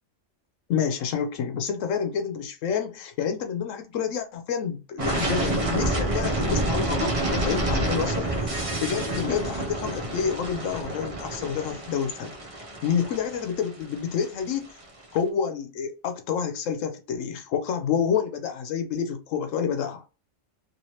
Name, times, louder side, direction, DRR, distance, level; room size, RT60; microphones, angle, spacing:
voice 1, 0.7-12.3 12.8-14.7 15.1-20.0, left 7 dB, 85° left, 1.0 m, -28 dB
sound 1, 5.0-14.8, right 1 dB, 35° right, 0.7 m, -28 dB
3.0 x 2.9 x 2.8 m
omnidirectional pair, 1.3 m